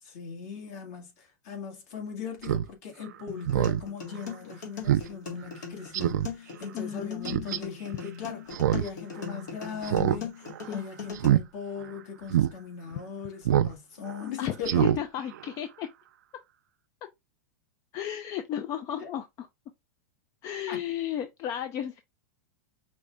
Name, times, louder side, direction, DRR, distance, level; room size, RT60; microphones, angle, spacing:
voice 1, 0.0-14.9 19.0-19.1 20.7-20.8, left 6 dB, 60° left, 1.8 m, -39 dB
Speech synthesizer, 2.4-2.6 3.0-3.1 3.4-3.8 4.2-4.3 4.9-5.1 5.4-5.5 5.9-6.3 7.2-7.6 8.5-8.9 9.2-9.3 9.8-10.2 10.5-10.7 11.1-11.4 11.8-11.9 12.3-12.5 13.4-13.7 14.1-14.2 14.6-15.0 15.3-15.4, right 11 dB, 85° right, 0.4 m, -24 dB
sound 1, 3.3-11.3, left 6 dB, 80° left, 1.9 m, -39 dB
voice 2, 6.7-7.7 10.6-10.8 14.4-15.9 17.9-19.5 20.4-22.0, left 10 dB, 35° left, 0.5 m, -34 dB
5.2 x 2.3 x 3.4 m
hypercardioid pair, 130°, 9 cm